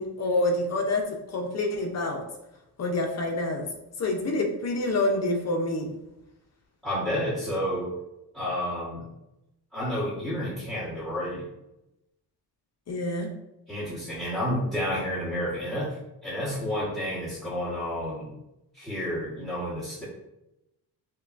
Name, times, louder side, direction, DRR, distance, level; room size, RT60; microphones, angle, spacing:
voice 1, 0.0-2.3 2.8-3.7 4.0-5.9 12.9-13.3, left 2 dB, 40° left, 2 dB, 0.7 m, -27 dB
voice 2, 6.8-7.9 8.3-9.0 9.7-11.5 13.7-18.3 18.7-20.0, equal, ahead, -13 dB, 1.2 m, -30 dB
5.6 x 2.3 x 2.5 m, 0.89 s
wide cardioid pair, 155°, 40 cm